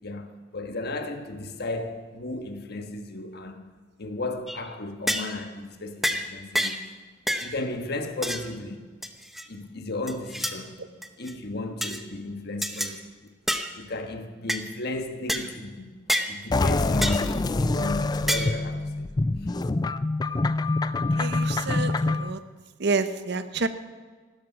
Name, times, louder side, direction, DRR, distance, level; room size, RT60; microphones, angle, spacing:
voice 1, 0.0-3.6 4.0-6.8 7.4-8.9 9.5-10.8 11.2-13.3 13.7-15.9 16.3-18.9 19.4-19.5, left 2 dB, 60° left, 1.4 m, -34 dB
sound 1, 4.5-4.7 5.1-5.4 6.0-6.2 6.5-6.8 7.3-7.5 8.2-8.5 9.0-9.5 10.1-10.6 11.0-11.3 11.8-12.0 12.6-12.9 13.5-13.7 14.5-14.6 15.3-15.5 16.1-16.3 17.0-17.3 18.3-18.6, equal, ahead, 0.8 m, -28 dB
sound 2, 16.5-22.3, left 2 dB, 20° left, 0.4 m, -25 dB
voice 2, 21.2-22.4 22.8-23.7, right 4 dB, 60° right, 0.8 m, -28 dB
15.5 x 12.5 x 6.1 m
head